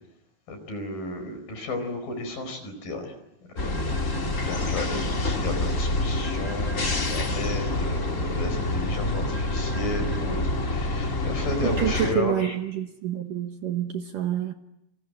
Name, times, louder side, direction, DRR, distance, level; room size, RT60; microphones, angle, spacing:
voice 1, 0.5-3.1 3.6-12.6, left 2 dB, 55° left, 8 dB, 6.3 m, -33 dB
sound 1, 3.6-12.1, left 2 dB, 30° left, 1.6 m, -27 dB
voice 2, 11.6-14.5, right 11 dB, 65° right, 6 dB, 2.5 m, -28 dB
29.0 x 27.0 x 7.7 m, 0.81 s
omnidirectional pair, 4.9 m